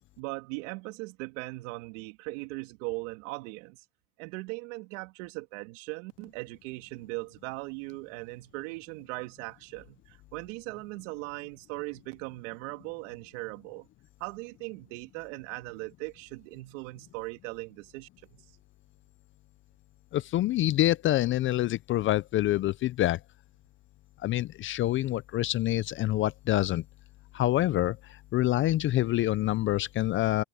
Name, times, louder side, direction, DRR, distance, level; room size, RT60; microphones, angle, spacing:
voice 1, 0.2-3.8 4.2-13.9 14.2-18.4, right 25 dB, 65° right, 2.6 m, -39 dB
voice 2, 20.1-23.2 24.2-26.8 27.3-28.0 28.3-30.4, left 14 dB, 30° left, 0.5 m, -26 dB
supercardioid pair, 115°, 40 cm